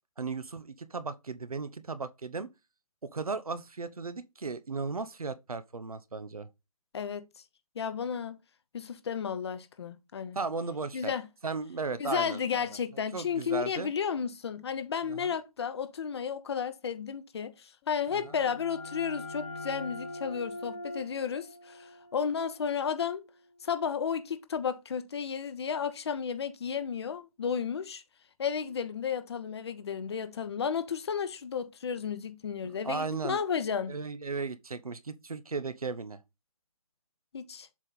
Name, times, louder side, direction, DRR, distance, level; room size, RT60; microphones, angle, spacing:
voice 1, 0.2-2.5 3.0-6.5 10.3-11.1 11.4-12.7 13.1-13.9 15.1-15.3 18.1-18.3 32.6-33.4 33.9-36.2, right 4 dB, 75° right, 0.9 m, -36 dB
voice 2, 6.9-7.2 7.7-8.4 8.7-10.4 10.9-11.3 12.0-23.2 23.6-28.0 28.4-33.9 37.3-37.7, left 7 dB, 45° left, 0.9 m, -33 dB
sound 1, 17.9-23.4, left 2 dB, 20° left, 1.1 m, -43 dB
7.4 x 3.6 x 4.0 m
figure-of-eight pair, 145°, 19 cm